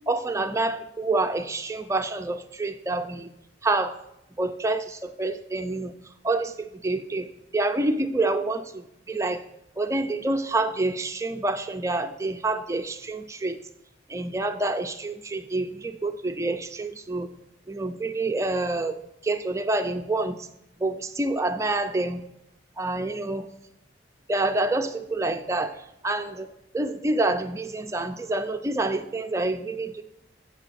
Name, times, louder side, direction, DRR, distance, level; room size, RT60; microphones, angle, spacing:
voice 1, 0.1-3.3 3.6-4.0 4.4-5.9 6.2-9.4 9.8-13.6 14.1-17.3 17.7-19.0 19.2-20.5 20.8-22.2 22.8-23.5 24.3-30.0, right 2 dB, 15° right, 7 dB, 0.4 m, -27 dB
7.7 x 6.9 x 7.4 m, 0.81 s
head